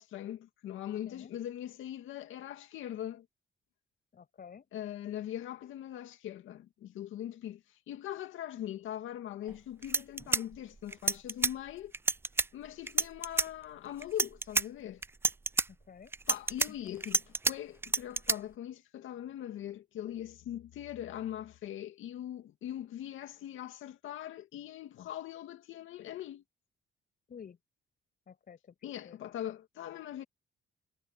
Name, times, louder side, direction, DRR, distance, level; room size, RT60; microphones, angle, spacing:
voice 1, 0.0-3.3 4.7-7.6 7.9-11.9 12.5-15.0 16.3-17.2 17.5-26.4 28.8-30.2, left 11 dB, 80° left, 2.4 m, -41 dB
voice 2, 1.1-1.4 4.1-4.7 15.7-16.1 16.7-17.0 27.3-27.6 28.3-28.7 29.0-29.2, left 7 dB, 50° left, 6.5 m, -51 dB
sound 1, 9.5-9.6 9.8-11.5 11.9-12.5 12.9-13.5 14.0-14.6 15.0-15.7 16.1-17.5 17.8-18.4, right 3 dB, 10° right, 0.3 m, -29 dB
cardioid pair, 90°, 20 cm